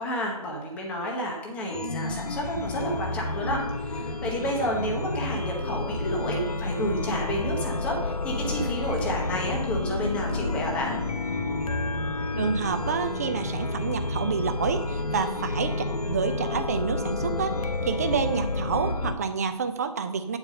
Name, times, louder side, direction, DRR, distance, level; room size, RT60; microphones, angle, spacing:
voice 1, 0.0-11.0, equal, 5° left, -1 dB, 1.0 m, -30 dB
Chime, 1.7-19.1, left 2 dB, 65° left, 0.9 m, -30 dB
voice 2, 12.4-20.4, right 5 dB, 25° right, 8 dB, 0.6 m, -28 dB
8.8 x 4.7 x 6.5 m, 0.94 s
figure-of-eight pair, 150°, 20 cm